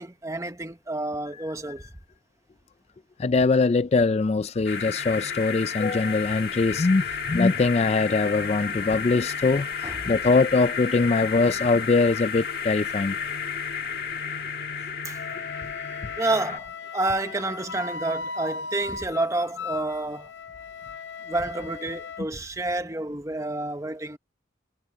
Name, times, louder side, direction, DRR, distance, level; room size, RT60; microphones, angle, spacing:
voice 1, 0.0-1.8 9.8-10.0 15.0-15.4 16.2-20.3 21.3-24.2, right 2 dB, 15° right, 0.9 m, -29 dB
voice 2, 3.2-13.2, left 3 dB, 35° left, 0.3 m, -22 dB
sound 1, 4.7-16.6, left 6 dB, 50° left, 1.5 m, -32 dB
Wind instrument woodwind instrument, 15.1-22.2, left 4 dB, 70° left, 0.7 m, -37 dB
head